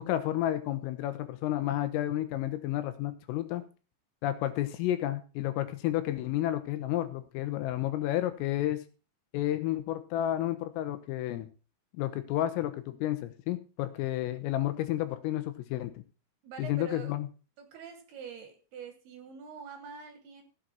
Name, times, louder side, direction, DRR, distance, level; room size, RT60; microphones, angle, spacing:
voice 1, 0.0-3.6 4.2-8.8 9.3-11.5 11.9-16.0 16.6-17.3, left 13 dB, 85° left, 10 dB, 3.8 m, -31 dB
voice 2, 16.4-17.1 17.6-20.4, right 6 dB, 65° right, 7 dB, 2.7 m, -45 dB
15.5 x 7.7 x 4.3 m, 0.34 s
omnidirectional pair, 5.8 m